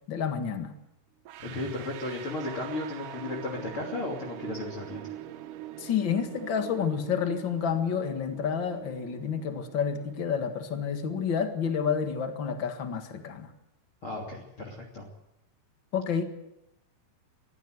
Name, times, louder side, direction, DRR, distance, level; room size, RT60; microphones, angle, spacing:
voice 1, 0.1-0.7 5.8-13.5 15.9-16.2, left 7 dB, 70° left, 6 dB, 1.1 m, -29 dB
sound 1, 1.3-12.1, right 12 dB, 85° right, 1.8 m, -44 dB
voice 2, 1.4-5.1 14.0-15.0, left 2 dB, 35° left, 1 dB, 3.1 m, -35 dB
22.0 x 15.5 x 7.9 m, 0.83 s
omnidirectional pair, 5.2 m